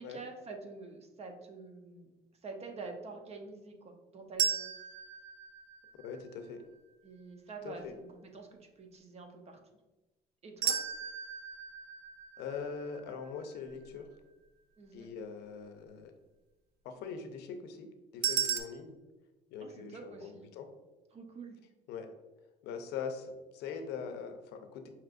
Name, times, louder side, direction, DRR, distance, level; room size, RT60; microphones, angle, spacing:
voice 1, 0.0-2.1 2.4-4.6 7.0-9.6 10.4-10.8 14.8-15.1 19.6-20.5 21.1-21.6, right 4 dB, 40° right, 4 dB, 0.7 m, -47 dB
sound 1, 4.4-6.5 10.6-13.7 18.2-18.6, right 8 dB, 70° right, 0.5 m, -35 dB
voice 2, 6.0-6.6 7.6-8.0 12.4-14.1 14.9-16.1 16.8-18.9 19.5-20.7 21.9-22.1 22.6-24.9, left 6 dB, 85° left, 7 dB, 0.6 m, -42 dB
5.7 x 2.9 x 2.5 m, 1.1 s
cardioid pair, 110°, 17 cm